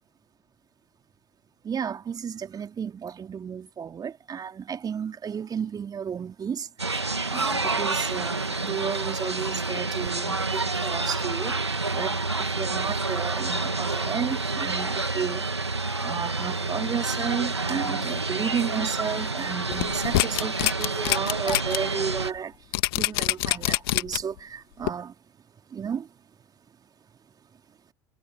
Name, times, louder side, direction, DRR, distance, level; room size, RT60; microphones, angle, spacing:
voice 1, 1.6-6.7 7.3-11.6 11.9-15.4 16.0-22.5 22.9-25.1 25.7-26.1, right 7 dB, 30° right, 3.3 m, -32 dB
sound 1, 6.8-22.3, right 3 dB, 85° right, 2.7 m, -28 dB
sound 2, 19.7-21.8 22.2-22.3 22.7-24.4 24.8-24.9, left 19 dB, 65° left, 2.3 m, -25 dB
figure-of-eight pair, 70°, 14 cm